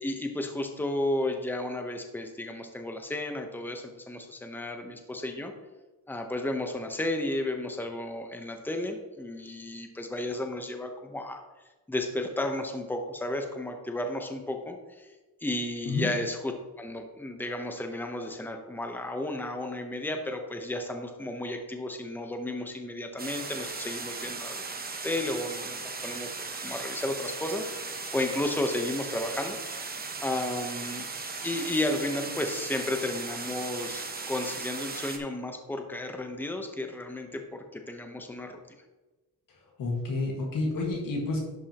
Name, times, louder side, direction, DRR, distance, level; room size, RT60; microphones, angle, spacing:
voice 1, 0.0-5.5 6.1-11.4 11.9-15.1 15.4-16.5 16.8-26.3 26.6-31.0 31.4-38.8, left 1 dB, 5° left, 4 dB, 0.9 m, -33 dB
sound 1, 23.2-35.2, right 4 dB, 25° right, 0.9 m, -37 dB
voice 2, 39.5-41.4, left 3 dB, 60° left, -2 dB, 1.9 m, -30 dB
11.5 x 5.5 x 3.0 m, 1.1 s
cardioid pair, 100°, 38 cm